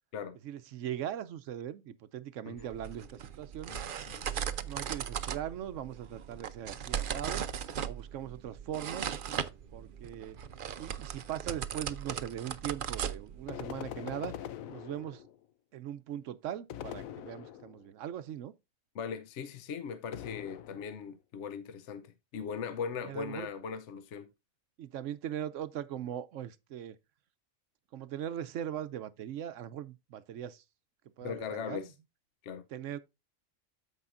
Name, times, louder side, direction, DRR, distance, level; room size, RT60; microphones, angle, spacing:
voice 1, 0.4-3.7 4.6-7.5 7.8-9.1 9.7-10.4 10.8-14.3 14.7-15.2 15.7-18.5 23.0-23.5 24.8-27.0 27.9-30.6 31.2-31.9 32.7-33.0, right 10 dB, 70° right, 1.0 m, -40 dB
sound 1, 2.6-13.8, right 8 dB, 55° right, 0.7 m, -38 dB
sound 2, 13.5-15.4 16.7-17.9 20.1-21.1, left 10 dB, 90° left, 1.1 m, -43 dB
voice 2, 18.9-22.0 22.3-24.3 31.2-31.9 32.4-32.6, left 6 dB, 65° left, 1.0 m, -39 dB
14.0 x 4.9 x 2.5 m
omnidirectional pair, 1.4 m